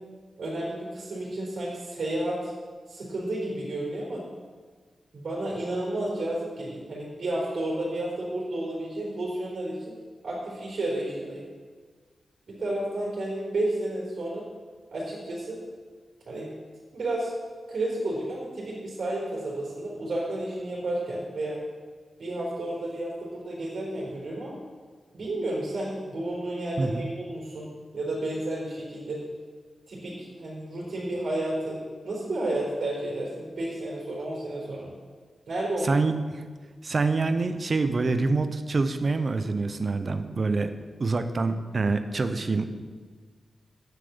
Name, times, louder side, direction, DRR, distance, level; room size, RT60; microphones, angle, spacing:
voice 1, 0.4-2.5 2.9-4.2 5.1-10.0 10.2-11.4 12.5-14.4 14.9-15.6 16.3-16.5 16.9-17.3 17.7-21.6 22.2-24.6 25.1-29.2 29.9-34.9 35.5-36.0, right 1 dB, 65° right, -5 dB, 4.1 m, -31 dB
voice 2, 26.8-27.1 35.8-36.1 36.8-40.7 41.0-42.6, right 3 dB, 45° right, 9 dB, 0.8 m, -26 dB
10.0 x 7.6 x 7.1 m, 1.5 s
wide cardioid pair, 105°, 0 cm